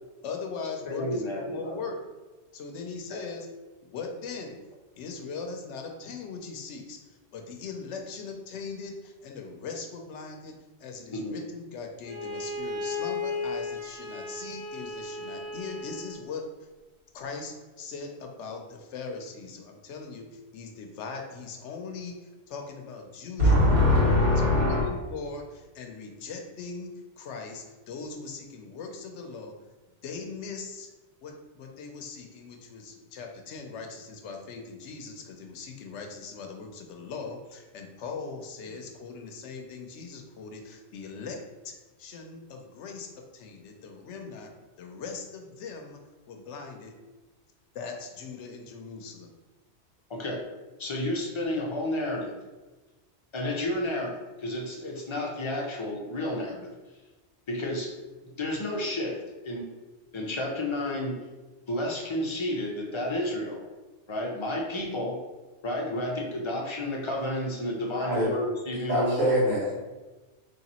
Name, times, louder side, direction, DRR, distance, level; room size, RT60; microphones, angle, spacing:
voice 1, 0.2-2.0 2.5-3.5 3.8-4.6 5.0-10.5 10.8-16.4 17.1-23.8 24.2-26.9 27.2-29.5 30.0-30.9 31.2-44.5 44.8-46.0 46.3-46.9 47.7-49.3, left 4 dB, 80° left, 3 dB, 0.9 m, -40 dB
voice 2, 0.9-1.7 3.1-3.2 11.1-11.3 50.1-50.4 50.8-52.4 53.3-56.7 57.5-57.9 58.4-59.2 59.4-59.7 60.1-61.2 61.7-63.6 64.1-65.2 65.6-69.3, left 1 dB, 30° left, -2 dB, 0.6 m, -31 dB
Bowed string instrument, 12.0-16.2, left 3 dB, 15° right, 0.8 m, -35 dB
voice 3, 23.4-24.8 68.0-68.3 68.9-69.7, left 1 dB, 85° right, -7 dB, 1.9 m, -22 dB
3.3 x 2.9 x 4.2 m, 1.2 s
omnidirectional pair, 1.2 m